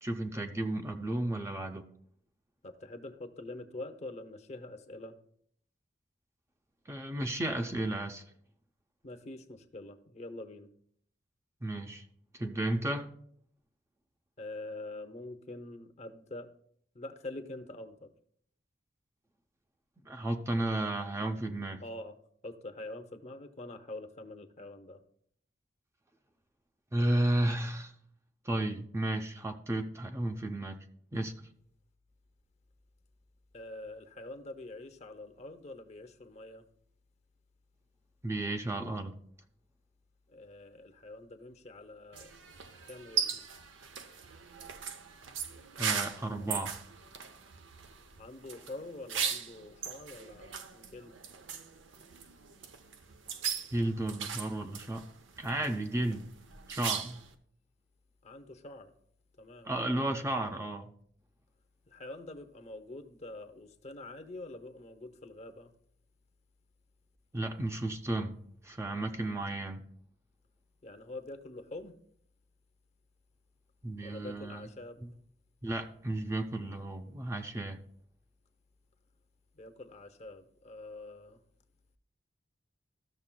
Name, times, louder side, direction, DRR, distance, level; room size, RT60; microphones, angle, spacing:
voice 1, 0.0-1.8 6.9-8.2 11.6-12.1 12.3-13.1 20.0-21.8 26.9-27.9 28.4-30.8 31.1-31.3 38.2-39.1 45.8-46.8 53.7-55.0 55.4-56.2 56.7-57.2 59.6-60.9 67.3-68.3 68.6-69.8 73.8-74.7 75.0-75.1 75.6-77.8, right 1 dB, 15° right, 5 dB, 0.5 m, -33 dB
voice 2, 2.6-5.2 9.0-10.7 14.4-16.5 16.9-18.1 21.8-22.2 22.4-25.0 33.5-36.6 40.3-42.3 42.8-43.4 48.2-51.2 58.2-58.9 59.4-59.7 61.9-65.7 70.8-72.0 74.0-75.0 79.5-81.4, left 2 dB, 35° left, 7 dB, 0.7 m, -45 dB
sound 1, 42.1-57.3, right 7 dB, 85° right, 0.7 m, -39 dB
14.5 x 6.5 x 2.2 m, 0.64 s
head